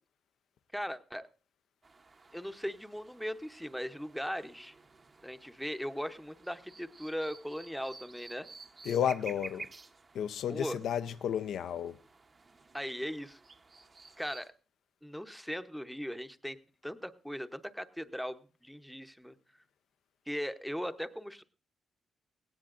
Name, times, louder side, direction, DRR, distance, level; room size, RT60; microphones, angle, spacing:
voice 1, 0.7-1.3 2.3-4.7 5.2-8.5 10.5-10.8 12.7-13.4 14.2-14.5 15.0-16.6 16.8-19.3 20.3-21.4, equal, ahead, 0.7 m, -39 dB
sound 1, 1.8-14.5, right 3 dB, 30° right, 0.8 m, -53 dB
voice 2, 8.9-9.7 10.1-11.9, left 9 dB, 80° left, 0.6 m, -32 dB
17.5 x 17.5 x 2.5 m
cardioid pair, 130°, 0 cm